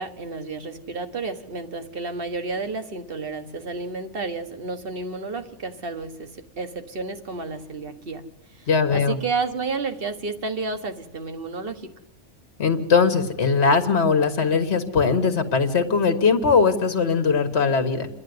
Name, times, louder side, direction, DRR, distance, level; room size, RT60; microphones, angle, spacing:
voice 1, 0.0-8.2 8.5-11.9, right 4 dB, 50° right, 7 dB, 1.6 m, -31 dB
voice 2, 8.7-9.2 12.6-18.1, left 5 dB, 60° left, 7 dB, 1.8 m, -20 dB
28.0 x 11.0 x 9.6 m, 0.94 s
omnidirectional pair, 1.2 m